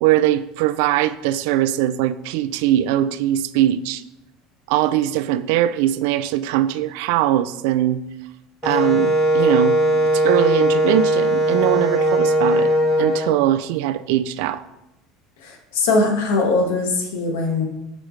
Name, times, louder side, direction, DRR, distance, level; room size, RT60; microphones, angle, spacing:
voice 1, 0.0-4.0 4.7-8.0 8.6-9.8 10.1-12.7 13.0-14.6, right 12 dB, 75° right, 14 dB, 0.4 m, -21 dB
Wind instrument woodwind instrument, 8.6-13.3, right 1 dB, 10° left, 2.3 m, -18 dB
voice 2, 15.4-17.6, left 3 dB, 85° left, 2 dB, 1.5 m, -21 dB
7.2 x 6.2 x 3.2 m, 0.91 s
supercardioid pair, 125°, 0 cm